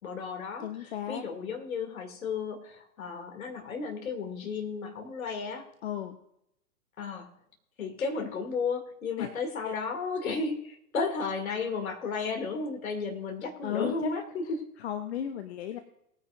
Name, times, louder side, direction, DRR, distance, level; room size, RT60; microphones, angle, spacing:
voice 1, 0.0-5.6 7.0-7.3 7.8-14.6, left 4 dB, 65° left, 3 dB, 2.9 m, -33 dB
voice 2, 0.6-1.2 5.8-6.2 9.2-9.3 9.6-9.7 13.6-14.1 14.8-15.8, left 10 dB, 45° left, 8 dB, 0.9 m, -34 dB
20.0 x 9.6 x 2.6 m, 0.76 s
figure-of-eight pair, 110°, 46 cm